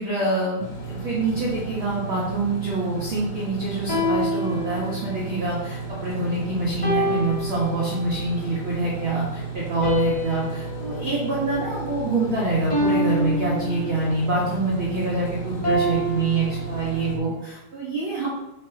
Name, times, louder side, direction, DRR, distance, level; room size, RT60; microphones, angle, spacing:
voice 1, 0.0-18.3, right 2 dB, 75° right, -6 dB, 1.1 m, -26 dB
sound 1, 0.6-17.2, right 4 dB, 45° left, 1.7 m, -34 dB
sound 2, 3.9-5.3 6.8-8.2 9.8-12.2 12.7-14.2 15.6-17.2, equal, 20° left, 1.2 m, -27 dB
8.3 x 4.7 x 3.9 m, 0.96 s
omnidirectional pair, 4.6 m